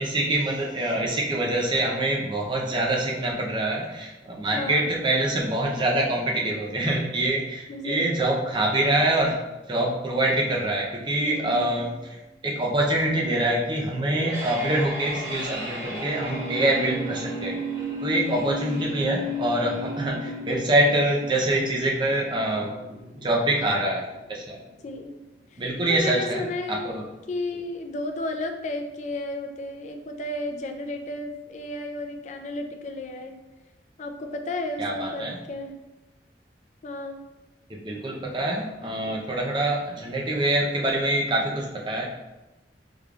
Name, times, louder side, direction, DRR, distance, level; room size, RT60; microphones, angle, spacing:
voice 1, 0.0-9.3 9.7-11.9 12.4-17.6 18.0-22.7 23.2-24.0 24.3-24.6 25.6-27.1 34.8-35.4 37.7-42.0, right 1 dB, 25° right, -1 dB, 0.5 m, -25 dB
voice 2, 4.5-4.9 7.7-8.2 11.2-11.9 18.1-18.4 24.8-25.2 25.5-26.9 27.3-33.4 34.0-35.7 36.8-37.2, left 2 dB, 40° left, 5 dB, 0.3 m, -33 dB
sound 1, 14.0-25.0, equal, 85° right, 1.0 m, -34 dB
3.7 x 3.3 x 2.3 m, 1.0 s
head